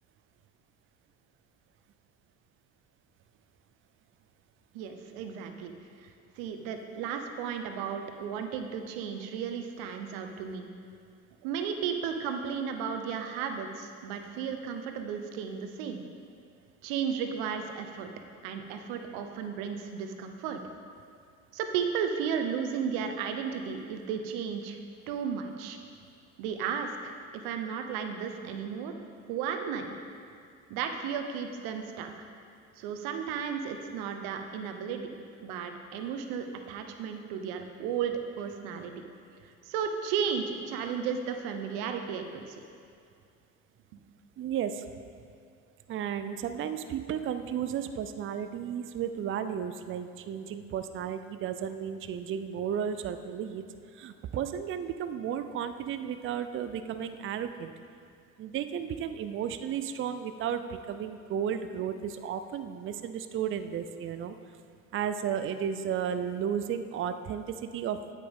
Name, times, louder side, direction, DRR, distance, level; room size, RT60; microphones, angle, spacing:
voice 1, 4.7-5.7 6.0-6.1 6.4-10.7 11.4-16.0 16.8-18.1 18.4-20.6 21.5-24.8 25.1-25.8 26.4-28.9 29.3-29.9 30.7-32.3 32.8-35.1 35.4-39.0 39.6-42.6, right 7 dB, 60° right, 6 dB, 1.0 m, -34 dB
voice 2, 44.4-44.9 45.9-53.6 53.9-57.7 58.4-64.4 64.9-68.0, right 8 dB, 30° right, 10 dB, 0.5 m, -33 dB
8.9 x 8.4 x 3.6 m, 2.3 s
hypercardioid pair, 70°, 41 cm